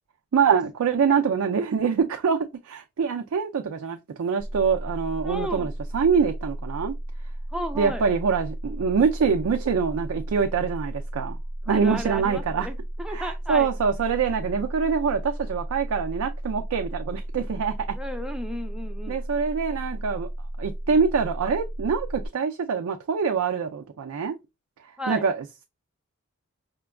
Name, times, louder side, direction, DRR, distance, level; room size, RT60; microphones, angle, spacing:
voice 1, 0.3-2.4 2.6-6.9 7.8-11.4 11.7-12.7 13.1-17.9 19.1-20.3 20.6-24.3 25.1-25.6, right 6 dB, 85° right, 0.4 m, -25 dB
sound 1, 4.4-22.3, right 1 dB, 50° left, 0.6 m, -34 dB
voice 2, 5.2-5.7 7.5-8.0 11.7-13.7 17.9-19.2 25.0-25.3, equal, 5° right, 0.4 m, -34 dB
5.0 x 2.3 x 2.2 m
head